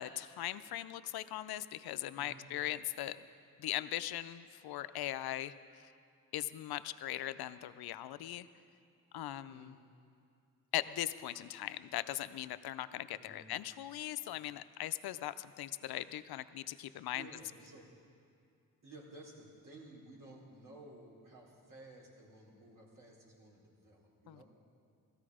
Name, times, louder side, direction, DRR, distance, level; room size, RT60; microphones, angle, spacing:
voice 1, 0.0-3.2 3.6-5.5 6.3-8.5 9.1-9.7 10.7-17.3 24.3-24.4, left 13 dB, 80° left, 13 dB, 0.6 m, -39 dB
voice 2, 2.1-2.4 9.4-9.7 13.2-13.4 16.8-18.0 18.8-24.4, right 2 dB, 60° right, -4 dB, 4.3 m, -55 dB
17.0 x 14.0 x 4.9 m, 2.4 s
cardioid pair, 55°, 37 cm